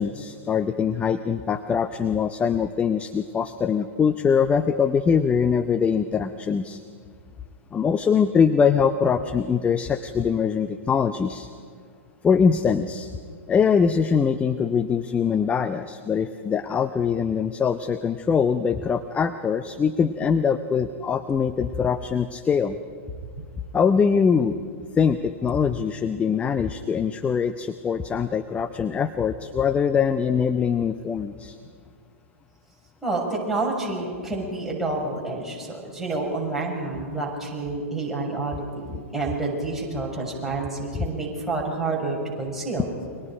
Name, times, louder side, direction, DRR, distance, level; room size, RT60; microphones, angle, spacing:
voice 1, 0.0-6.8 7.7-11.5 12.2-13.1 13.5-22.8 23.7-24.6 24.9-31.6, left 6 dB, 15° left, 10 dB, 0.8 m, -23 dB
voice 2, 33.0-42.9, right 3 dB, 5° right, -3 dB, 6.7 m, -29 dB
29.5 x 24.0 x 5.1 m, 2.2 s
figure-of-eight pair, 105°, 7 cm